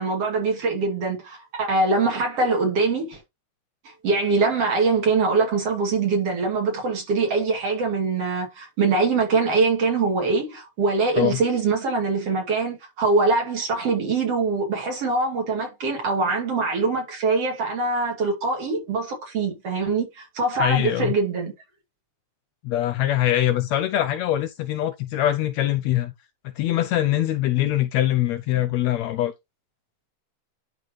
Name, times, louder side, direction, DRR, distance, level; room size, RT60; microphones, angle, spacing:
voice 1, 0.0-3.2 3.9-21.5, right 4 dB, 55° right, 3.5 m, -23 dB
voice 2, 20.6-21.1 22.6-26.1 26.6-29.3, left 13 dB, 75° left, 1.7 m, -23 dB
11.0 x 4.7 x 3.2 m
omnidirectional pair, 3.5 m